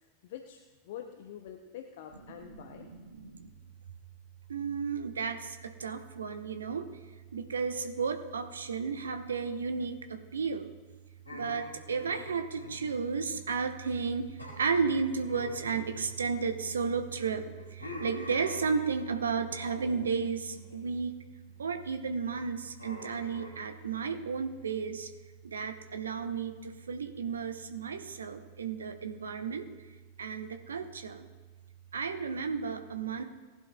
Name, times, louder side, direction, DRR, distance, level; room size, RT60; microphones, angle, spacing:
voice 1, 0.2-2.9, left 9 dB, 55° left, 5 dB, 0.8 m, -46 dB
voice 2, 2.5-3.5 4.5-6.9 7.3-10.7 11.3-21.2 21.6-25.1 25.4-29.7 30.2-31.2 31.9-33.2, right 5 dB, 70° right, 7 dB, 1.0 m, -33 dB
sound 1, 11.2-13.7 13.9-14.1 14.4-16.7 17.1-19.1 19.5-20.1 20.5-21.0 21.4-21.8 22.8-23.5, left 2 dB, 90° right, 4.3 m, -47 dB
19.0 x 11.0 x 2.4 m, 1.3 s
figure-of-eight pair, 90°, 0 cm